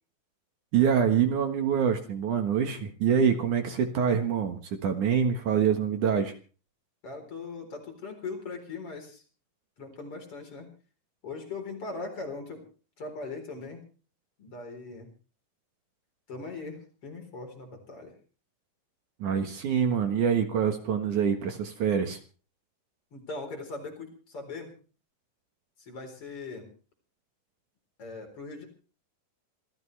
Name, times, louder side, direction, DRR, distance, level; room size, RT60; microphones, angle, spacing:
voice 1, 0.7-6.3 19.2-22.2, right 7 dB, 60° right, 6 dB, 2.7 m, -25 dB
voice 2, 7.0-9.2 9.8-10.7 11.2-12.6 13.0-13.8 14.4-15.1 16.3-18.1 23.1-24.7 25.8-26.7 28.0-28.7, left 3 dB, 40° left, 3 dB, 5.0 m, -40 dB
26.5 x 15.0 x 3.3 m, 0.38 s
omnidirectional pair, 4.2 m